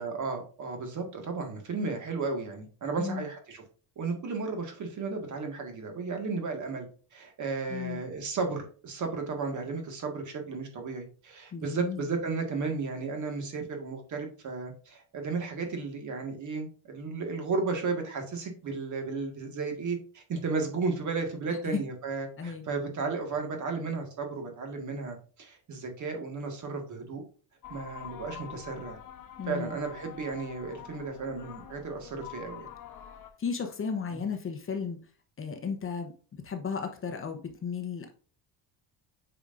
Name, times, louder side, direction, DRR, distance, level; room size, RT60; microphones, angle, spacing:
voice 1, 0.0-3.6 4.0-27.2 27.7-29.0 29.5-32.7 34.1-34.2, right 4 dB, 45° right, 4 dB, 1.9 m, -34 dB
voice 2, 7.7-8.0 11.5-12.1 21.5-21.8 22.4-22.6 29.4-29.8 33.4-35.0 35.4-38.1, left 6 dB, 30° left, 5 dB, 0.9 m, -34 dB
sound 1, 27.6-33.3, left 9 dB, 50° left, 1.1 m, -46 dB
8.8 x 4.9 x 2.6 m, 0.39 s
cardioid pair, 165°, 41 cm